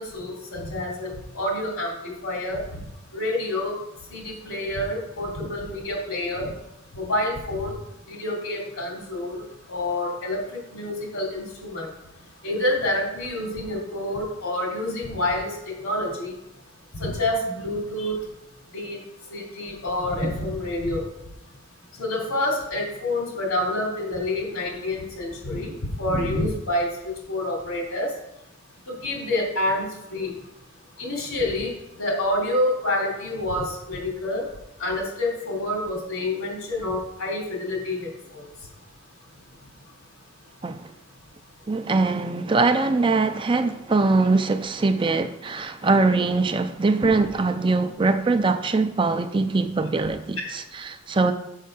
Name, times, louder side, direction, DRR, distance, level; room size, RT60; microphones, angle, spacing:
voice 1, 0.0-2.8 3.1-3.8 4.1-6.5 6.9-7.7 8.1-9.4 9.7-11.9 12.4-15.5 15.8-16.3 16.9-18.2 18.7-19.0 19.3-21.0 22.0-28.1 28.9-30.3 31.0-34.4 34.8-38.4 50.4-50.5, left 1 dB, 85° left, -1 dB, 3.1 m, -28 dB
voice 2, 41.7-51.3, right 3 dB, 25° right, 9 dB, 0.4 m, -22 dB
6.5 x 5.6 x 6.7 m, 0.88 s
head